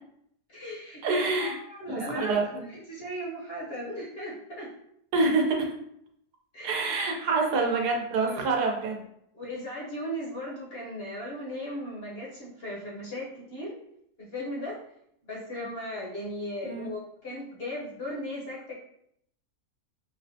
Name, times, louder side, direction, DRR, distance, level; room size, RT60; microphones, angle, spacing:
voice 1, 0.5-2.4 2.7-4.7 6.5-6.9 7.3-7.5 8.3-8.4 9.3-13.8 14.2-14.8 15.2-18.7, left 1 dB, 50° left, -4 dB, 0.8 m, -37 dB
voice 2, 1.0-1.6 1.9-2.6 5.1-5.7 6.6-9.0 16.6-16.9, right 3 dB, 85° right, 1 dB, 1.3 m, -26 dB
5.5 x 2.1 x 2.6 m, 0.72 s
omnidirectional pair, 1.7 m